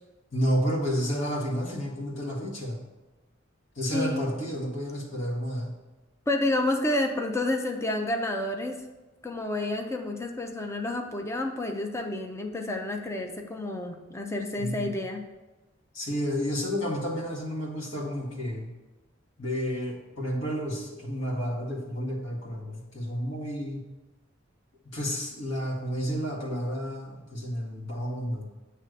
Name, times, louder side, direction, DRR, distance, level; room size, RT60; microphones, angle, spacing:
voice 1, 0.3-2.8 3.7-5.8 14.6-14.9 15.9-18.7 19.4-23.8 24.9-28.5, equal, 75° left, -2 dB, 1.6 m, -31 dB
voice 2, 3.9-4.3 6.3-8.7 9.2-15.3, left 1 dB, 15° left, 3 dB, 0.5 m, -29 dB
8.0 x 3.3 x 6.3 m, 1.1 s
head